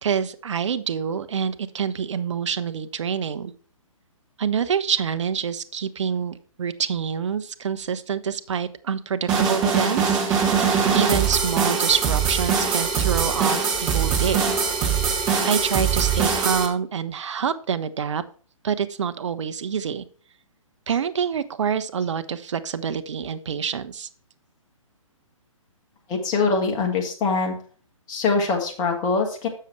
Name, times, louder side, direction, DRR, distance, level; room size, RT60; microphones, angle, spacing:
voice 1, 0.0-3.5 4.4-14.5 15.4-18.2 18.6-20.0 20.9-24.1, right 7 dB, 60° right, 13 dB, 0.7 m, -26 dB
sound 1, 9.3-16.7, right 6 dB, 20° right, 1.3 m, -22 dB
voice 2, 26.1-27.6 28.1-29.5, left 4 dB, 20° left, 2 dB, 1.4 m, -23 dB
6.6 x 6.5 x 4.3 m, 0.42 s
figure-of-eight pair, 135°, 17 cm